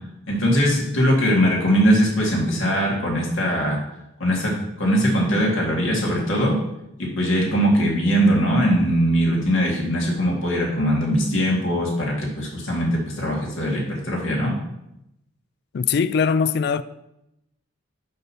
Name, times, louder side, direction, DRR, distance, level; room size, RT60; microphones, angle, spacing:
voice 1, 0.3-3.8 4.2-6.5 7.0-14.6, equal, 65° left, 2.1 m, -21 dB
voice 2, 15.7-16.8, left 6 dB, 50° left, 0.3 m, -21 dB
6.1 x 5.4 x 5.7 m
head